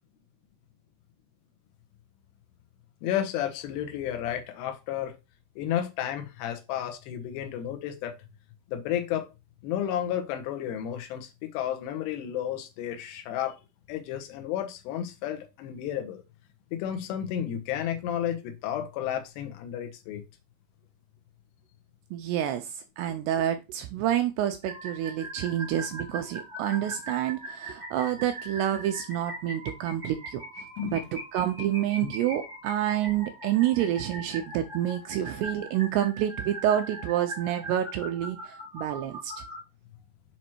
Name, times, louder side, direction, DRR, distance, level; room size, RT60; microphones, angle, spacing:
voice 1, 3.0-5.2 5.6-8.2 8.7-9.3 9.6-13.6 13.9-16.2 16.7-20.2 30.8-31.0 32.0-32.1, left 10 dB, 75° left, 2.9 m, -32 dB
voice 2, 22.1-30.4 30.8-31.0 31.3-39.3, right 11 dB, 80° right, 2.5 m, -28 dB
sound 1, 24.6-39.6, right 1 dB, 40° right, 0.6 m, -41 dB
7.5 x 3.0 x 4.4 m
omnidirectional pair, 5.1 m